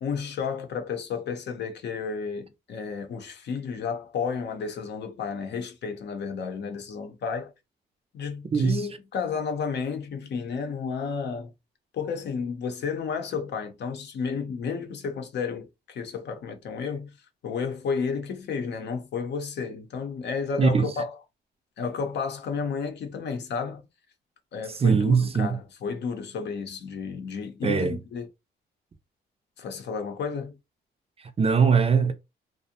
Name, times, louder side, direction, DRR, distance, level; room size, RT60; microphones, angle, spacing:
voice 1, 0.0-7.5 8.1-11.5 11.9-17.1 17.4-21.1 21.8-23.8 24.5-28.3 29.6-30.5, left 5 dB, 60° left, 0.7 m, -32 dB
voice 2, 8.5-8.9 20.6-21.0 24.7-25.5 27.6-28.0 31.2-32.1, right 5 dB, 30° right, 0.5 m, -22 dB
2.5 x 2.1 x 2.7 m
cardioid pair, 90°, 20 cm